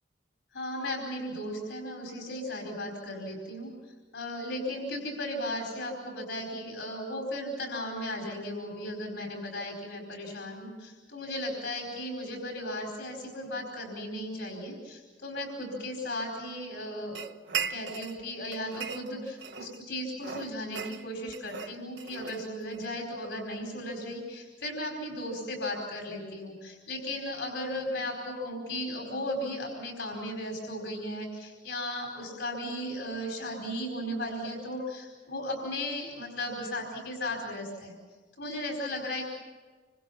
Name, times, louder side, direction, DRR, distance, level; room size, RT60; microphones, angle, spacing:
voice 1, 0.5-17.2 17.6-38.0 38.4-39.2, left 1 dB, 80° left, 1 dB, 4.5 m, -36 dB
sound 1, 17.1-18.2 18.5-19.8 20.2-22.9, right 6 dB, 65° right, 1.0 m, -38 dB
27.5 x 24.5 x 5.7 m, 1.4 s
head